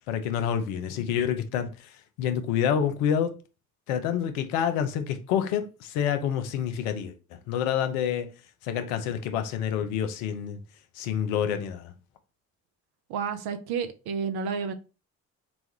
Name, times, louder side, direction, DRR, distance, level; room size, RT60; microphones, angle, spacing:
voice 1, 0.1-1.7 2.2-3.3 3.9-7.1 7.5-8.3 8.6-10.6 11.0-11.9, left 8 dB, 70° left, 0.7 m, -27 dB
voice 2, 13.1-14.7, right 6 dB, 55° right, 0.7 m, -30 dB
4.0 x 2.4 x 2.9 m
figure-of-eight pair, 45°, 44 cm